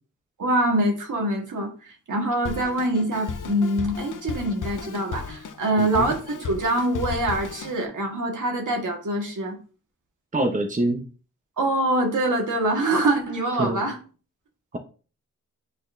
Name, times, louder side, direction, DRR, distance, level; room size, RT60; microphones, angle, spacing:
voice 1, 0.4-1.7 2.1-9.6 11.6-14.0, right 1 dB, 70° right, 1.8 m, -24 dB
Drum kit, 2.5-7.9, left 6 dB, 70° left, 0.7 m, -35 dB
voice 2, 5.8-6.1 10.3-11.0 13.6-13.8, right 1 dB, 25° right, 0.9 m, -25 dB
8.8 x 4.2 x 2.7 m
wide cardioid pair, 85°, 32 cm